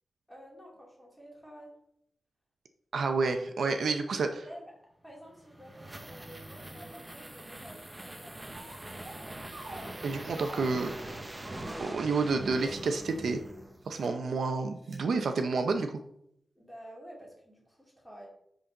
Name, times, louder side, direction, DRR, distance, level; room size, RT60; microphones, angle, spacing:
voice 1, 0.3-1.7 4.1-4.7 5.0-9.3 16.5-18.3, equal, ahead, -4 dB, 2.5 m, -51 dB
voice 2, 2.9-4.3 10.0-10.9 11.8-13.4 13.9-16.0, right 4 dB, 70° right, 6 dB, 0.6 m, -29 dB
sound 1, 5.2-14.0, right 1 dB, 15° right, 0.7 m, -43 dB
sound 2, 8.5-9.2 9.5-10.9 11.4-13.2 13.8-14.1 14.8-15.0, right 1 dB, 45° right, 2.9 m, -48 dB
10.0 x 4.0 x 3.9 m, 0.73 s
wide cardioid pair, 155°, 0 cm